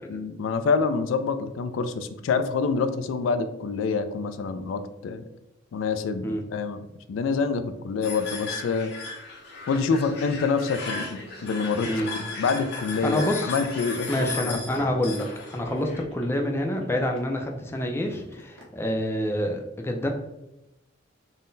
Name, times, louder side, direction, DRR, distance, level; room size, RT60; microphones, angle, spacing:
voice 1, 0.1-5.2 5.7-6.2 6.5-8.9 9.7-11.9 12.4-14.9, left 4 dB, 90° left, 10 dB, 0.3 m, -27 dB
sound 1, 8.0-16.0, left 3 dB, 55° left, 0.7 m, -36 dB
sound 2, 9.3-17.5 17.9-18.6, right 2 dB, 85° right, 1.0 m, -48 dB
voice 2, 13.0-13.5 14.1-20.1, left 1 dB, 10° left, 2 dB, 0.4 m, -27 dB
3.8 x 2.1 x 3.8 m, 0.91 s
head